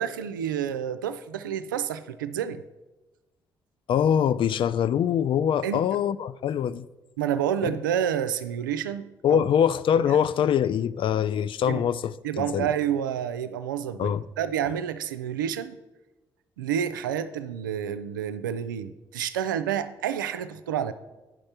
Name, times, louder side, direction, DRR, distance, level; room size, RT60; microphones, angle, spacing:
voice 1, 0.0-2.6 5.6-5.8 7.2-9.4 10.1-10.2 11.7-11.8 12.2-15.8 16.6-20.9, right 9 dB, 90° right, 0.4 m, -29 dB
voice 2, 3.9-6.9 7.6-7.7 9.2-12.7 14.0-14.2, left 8 dB, 55° left, 0.4 m, -24 dB
9.2 x 5.3 x 5.8 m
hypercardioid pair, 40°, 10 cm